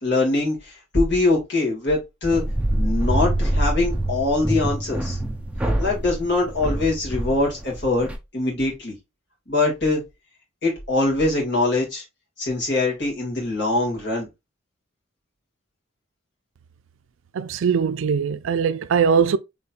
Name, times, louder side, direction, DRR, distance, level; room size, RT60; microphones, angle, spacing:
voice 1, 0.0-2.4 2.7-5.2 5.8-8.1 8.3-8.9 9.5-10.0 10.6-12.0 12.4-14.3, left 2 dB, 55° left, 2.1 m, -23 dB
sound 1, 2.3-8.2, right 1 dB, 5° right, 0.4 m, -25 dB
voice 2, 17.3-19.4, right 6 dB, 70° right, 0.4 m, -21 dB
4.3 x 3.7 x 2.4 m
head